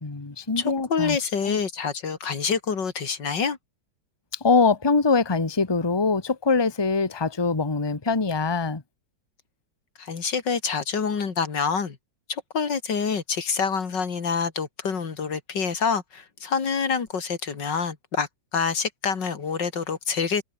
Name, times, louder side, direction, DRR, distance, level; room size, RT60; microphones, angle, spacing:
voice 1, 0.0-1.2 1.5-1.6 4.4-8.8, left 4 dB, 15° left, 1.3 m, -23 dB
voice 2, 0.6-3.6 10.0-12.0 12.3-20.4, left 6 dB, 80° left, 3.0 m, -27 dB
omnidirectional pair, 1.9 m